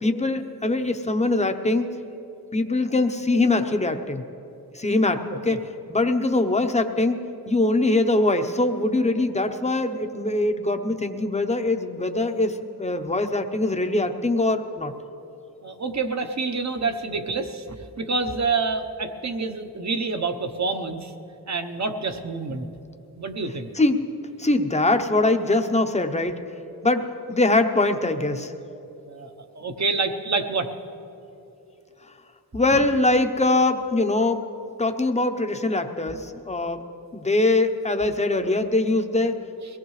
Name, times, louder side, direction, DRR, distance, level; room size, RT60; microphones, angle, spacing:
voice 1, 0.0-1.9 2.5-4.2 4.7-5.6 5.9-7.2 7.5-14.9 23.7-24.0 24.4-26.4 26.8-28.5 32.5-34.4 34.8-36.8 37.1-39.4, left 2 dB, 20° left, 7 dB, 0.8 m, -22 dB
voice 2, 15.6-21.1 21.5-22.6 23.1-23.7 29.1-30.7 32.7-32.8, right 4 dB, 45° right, 6 dB, 1.0 m, -27 dB
22.5 x 17.5 x 3.2 m, 2.9 s
wide cardioid pair, 95°, 38 cm